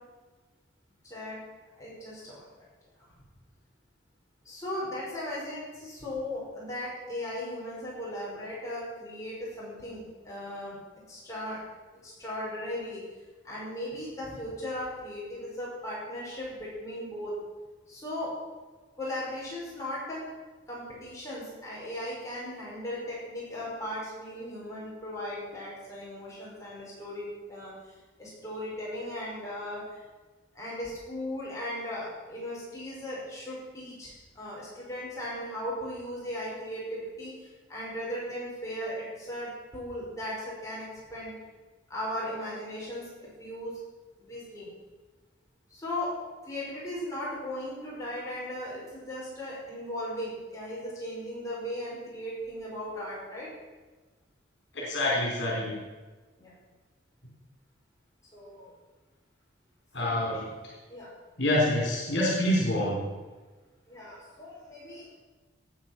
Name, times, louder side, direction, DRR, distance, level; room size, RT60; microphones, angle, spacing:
voice 1, 1.1-1.4 1.8-2.4 4.5-10.8 11.1-11.6 12.0-13.0 13.4-17.3 17.9-18.3 19.0-20.2 20.7-27.7 28.2-29.8 30.6-34.1 34.4-37.3 37.7-41.3 41.9-43.8 44.2-44.7 45.7-46.1 46.5-53.5 56.4-56.5 58.3-58.7 60.0-60.3 60.9-61.1 63.9-65.2, left 1 dB, 15° left, -7 dB, 5.3 m, -37 dB
voice 2, 54.7-55.8 59.9-60.5 61.4-63.0, left 1 dB, 65° left, -4 dB, 3.9 m, -26 dB
18.0 x 8.6 x 6.0 m, 1.3 s
head